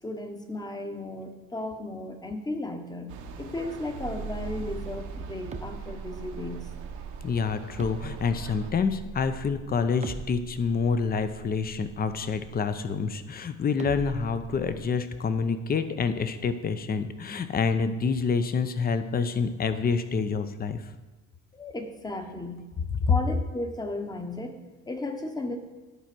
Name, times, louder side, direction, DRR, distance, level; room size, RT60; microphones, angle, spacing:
voice 1, 0.0-6.7 21.5-22.6 23.1-25.6, left 2 dB, 10° left, 6 dB, 1.0 m, -35 dB
sound 1, 3.1-8.7, right 5 dB, 65° right, 1.1 m, -42 dB
sound 2, 4.0-13.2 13.8-14.8, right 6 dB, 20° right, 0.7 m, -41 dB
voice 2, 7.2-20.8, left 5 dB, 30° left, 10 dB, 0.6 m, -27 dB
11.0 x 4.4 x 6.0 m, 1.2 s
cardioid pair, 110°, 31 cm